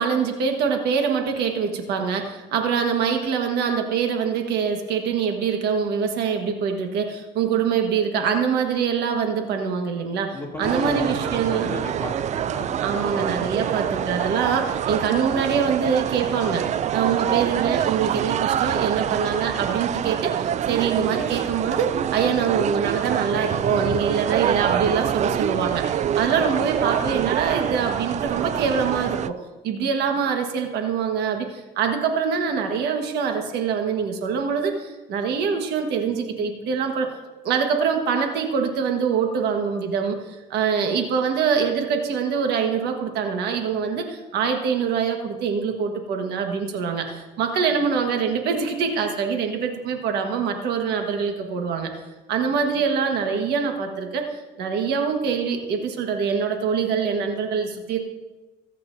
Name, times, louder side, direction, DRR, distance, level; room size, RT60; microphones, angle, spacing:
voice 1, 0.0-11.7 12.8-16.7 16.9-29.4 29.6-37.1 37.4-40.2 40.5-51.9 52.3-58.0, right 6 dB, 75° right, 4 dB, 1.4 m, -24 dB
voice 2, 10.3-13.2, left 2 dB, 15° left, -2 dB, 2.7 m, -34 dB
sound 1, 10.6-29.3, right 10 dB, 45° right, 0.4 m, -26 dB
21.5 x 8.3 x 2.7 m, 1.2 s
cardioid pair, 100°, 17 cm